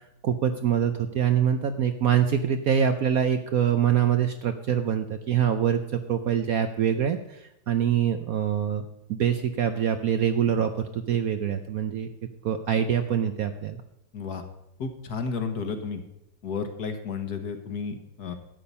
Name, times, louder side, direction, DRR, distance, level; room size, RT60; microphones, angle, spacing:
voice 1, 0.2-8.8 9.1-12.1 12.4-13.8, right 8 dB, 65° right, 8 dB, 0.9 m, -24 dB
voice 2, 14.1-14.4 14.8-16.0 16.4-18.3, left 5 dB, 55° left, 7 dB, 1.6 m, -32 dB
13.0 x 8.7 x 5.5 m, 0.85 s
omnidirectional pair, 2.1 m